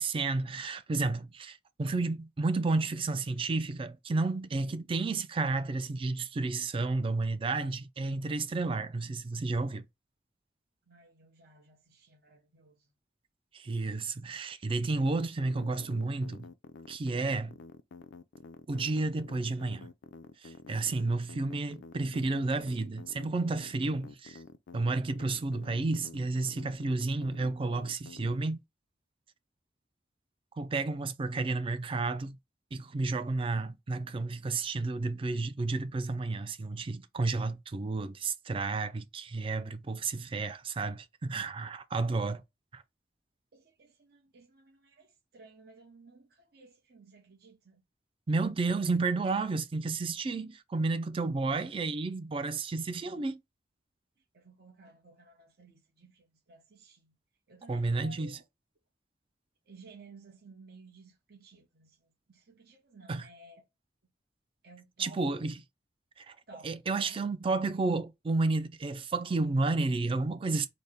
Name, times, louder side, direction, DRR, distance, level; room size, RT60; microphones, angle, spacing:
voice 1, 0.0-9.8 13.5-16.5 16.9-17.6 18.7-19.9 20.4-24.4 24.7-28.6 30.6-32.4 32.7-42.4 42.7-42.8 48.3-53.4 57.7-58.4 63.1-63.3 65.0-65.6 66.2-66.4 66.6-70.7, right 3 dB, 30° right, 0.4 m, -31 dB
voice 2, 10.9-12.9 43.5-47.8 54.2-57.2 57.5-58.4 59.7-63.7 64.6-65.6 66.5-67.2, right 3 dB, 60° right, 0.9 m, -56 dB
sound 1, 14.9-28.4, left 4 dB, 90° left, 0.4 m, -49 dB
4.1 x 2.1 x 3.4 m
head